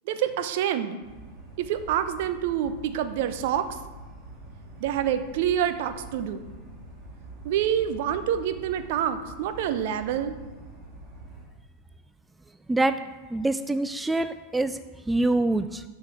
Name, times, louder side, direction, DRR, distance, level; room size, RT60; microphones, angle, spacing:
voice 1, 0.1-1.0 1.6-3.7 4.8-6.5 7.4-10.4, right 10 dB, 50° right, 9 dB, 0.7 m, -27 dB
sound 1, 1.0-11.5, right 2 dB, 25° right, 2.2 m, -45 dB
voice 2, 13.3-14.8 15.1-15.8, right 2 dB, 10° right, 11 dB, 0.3 m, -25 dB
11.5 x 5.1 x 6.1 m, 1.3 s
figure-of-eight pair, 90°, 0 cm